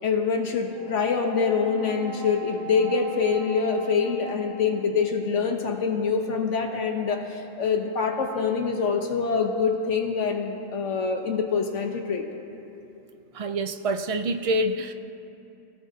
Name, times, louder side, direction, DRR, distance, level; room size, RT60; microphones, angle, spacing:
voice 1, 0.0-12.2, left 5 dB, 75° left, 3 dB, 1.3 m, -25 dB
Brass instrument, 0.7-5.1, right 4 dB, 30° right, 3.8 m, -40 dB
voice 2, 13.3-14.9, right 1 dB, 55° right, 8 dB, 0.4 m, -26 dB
25.0 x 17.0 x 2.8 m, 2.8 s
omnidirectional pair, 1.3 m